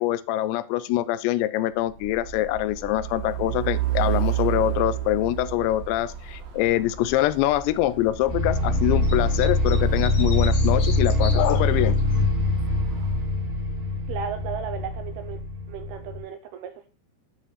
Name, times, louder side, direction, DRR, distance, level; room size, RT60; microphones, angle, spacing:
voice 1, 0.0-12.0, left 14 dB, 85° left, 15 dB, 2.8 m, -24 dB
Truck, 1.8-13.2, right 12 dB, 65° right, 3.0 m, -32 dB
sound 1, 8.3-16.2, left 1 dB, 20° right, 2.0 m, -23 dB
sound 2, 9.0-12.2, left 4 dB, 55° left, 1.8 m, -38 dB
voice 2, 14.1-15.4 15.7-16.9, right 8 dB, 80° right, 7 dB, 2.4 m, -35 dB
9.1 x 5.1 x 4.1 m, 0.33 s
omnidirectional pair, 5.1 m